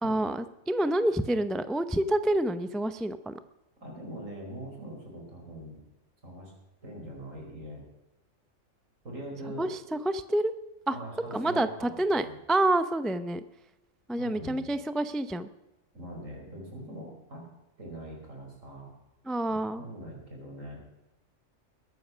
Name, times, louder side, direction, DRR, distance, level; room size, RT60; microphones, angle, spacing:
voice 1, 0.0-3.3 9.6-10.5 10.9-11.0 11.3-13.4 14.1-15.5 19.3-19.8, right 1 dB, ahead, 12 dB, 0.4 m, -28 dB
voice 2, 3.8-5.8 6.2-6.5 6.8-7.9 9.0-9.7 10.9-11.9 12.2-12.4 14.2-14.7 15.9-17.5 17.8-18.9 19.5-20.8, right 1 dB, 70° right, 0 dB, 5.0 m, -42 dB
21.0 x 9.5 x 6.2 m, 1.0 s
omnidirectional pair, 1.4 m